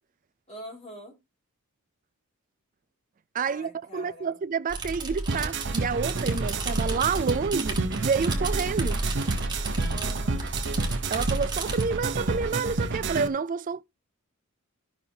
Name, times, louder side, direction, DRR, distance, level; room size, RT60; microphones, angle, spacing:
voice 1, 0.5-1.2 3.4-4.4 9.9-10.5, equal, 30° left, 3.5 m, -44 dB
voice 2, 3.3-9.0 11.1-13.8, right 5 dB, 35° right, 0.4 m, -29 dB
sound 1, 4.7-11.9, right 2 dB, 20° right, 1.8 m, -33 dB
sound 2, 5.3-13.3, right 3 dB, 55° right, 0.9 m, -29 dB
13.5 x 5.9 x 2.7 m
head